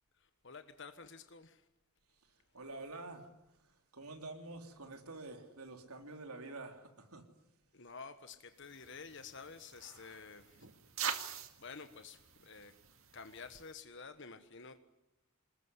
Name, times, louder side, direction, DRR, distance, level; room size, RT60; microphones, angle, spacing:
voice 1, 0.2-1.7 7.7-10.7 11.6-12.7 13.1-14.8, left 5 dB, 55° left, 1.4 m, -51 dB
voice 2, 2.5-3.3 3.9-7.2 9.8-10.2, right 2 dB, 80° right, 3.5 m, -48 dB
sound 1, 8.6-13.7, right 8 dB, 65° right, 2.1 m, -45 dB
26.5 x 21.0 x 9.8 m
head